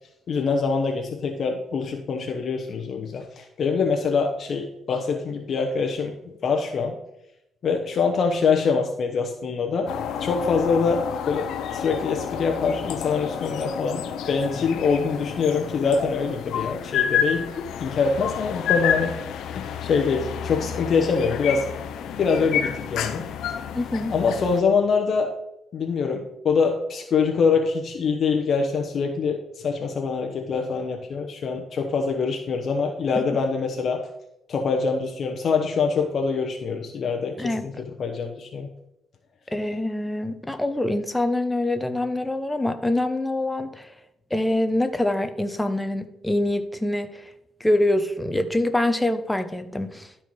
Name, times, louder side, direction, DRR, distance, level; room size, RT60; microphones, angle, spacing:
voice 1, 0.3-7.0 7.6-9.9 10.2-21.7 22.2-23.3 24.1-25.3 25.7-34.0 34.5-38.7, left 5 dB, 55° left, 3 dB, 0.9 m, -24 dB
sound 1, 9.9-24.6, left 8 dB, 80° left, 0.7 m, -30 dB
voice 2, 23.7-24.1 37.4-37.7 39.5-43.9 44.3-47.3 47.6-50.1, left 1 dB, 10° left, 9 dB, 0.8 m, -25 dB
12.0 x 4.5 x 4.7 m, 0.85 s
cardioid pair, 90°, 0 cm